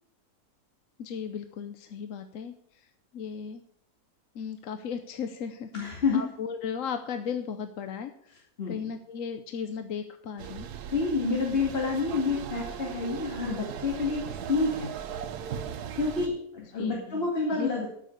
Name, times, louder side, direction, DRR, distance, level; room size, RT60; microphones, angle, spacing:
voice 1, 1.0-2.9 3.1-3.6 4.3-5.7 6.1-10.7 16.8-17.2 17.5-17.7, left 7 dB, 60° left, 8 dB, 1.0 m, -36 dB
voice 2, 5.7-6.2 8.6-8.9 10.9-14.2 14.5-14.9 16.0-17.9, left 4 dB, 40° left, -2 dB, 2.4 m, -28 dB
sound 1, 10.4-16.3, right 9 dB, 80° right, 1.3 m, -38 dB
13.0 x 6.5 x 6.6 m, 0.68 s
omnidirectional pair, 1.7 m